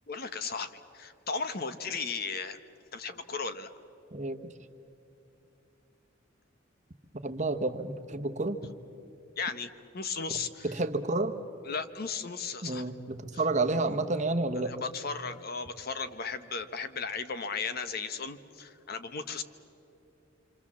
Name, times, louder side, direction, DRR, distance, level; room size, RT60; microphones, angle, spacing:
voice 1, 0.1-2.6 2.9-3.7 9.4-10.7 11.6-12.9 14.6-19.4, left 5 dB, 50° left, 10 dB, 1.0 m, -36 dB
voice 2, 4.1-4.5 7.2-8.6 10.3-10.4 10.6-11.3 12.6-14.7, right 2 dB, 35° right, 6 dB, 1.1 m, -30 dB
26.5 x 26.0 x 7.4 m, 2.8 s
head